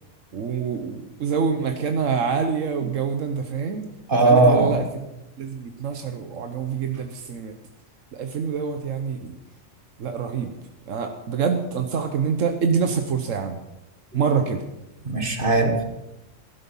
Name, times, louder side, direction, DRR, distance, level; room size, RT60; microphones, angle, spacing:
voice 1, 0.3-3.9 4.2-4.8 5.4-7.5 8.1-9.4 10.0-10.5 10.9-13.6 14.1-14.6, right 6 dB, 90° right, 6 dB, 1.4 m, -26 dB
voice 2, 4.1-4.8 15.0-15.8, right 2 dB, 45° right, 4 dB, 1.9 m, -18 dB
15.0 x 12.5 x 5.5 m, 0.96 s
omnidirectional pair, 1.3 m